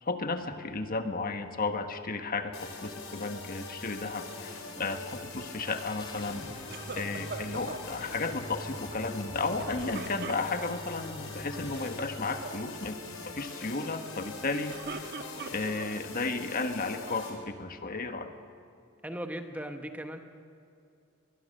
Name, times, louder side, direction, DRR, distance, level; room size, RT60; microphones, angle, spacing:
voice 1, 0.0-6.7 6.9-13.0 13.2-15.1 15.5-18.3, left 3 dB, 45° left, 7 dB, 1.4 m, -34 dB
sound 1, 2.4-2.5 3.0-3.1 5.6-12.4, left 1 dB, 20° left, 2.3 m, -45 dB
sound 2, 2.5-17.3, left 3 dB, 90° left, 4.6 m, -43 dB
sound 3, 6.7-7.9 9.6-10.9 11.6-11.9 12.2-12.6 14.5-16.0 16.6-17.3, right 4 dB, 50° right, 1.3 m, -42 dB
voice 2, 19.0-20.2, right 1 dB, 5° right, 6 dB, 1.1 m, -38 dB
22.5 x 22.5 x 6.6 m, 2.6 s
head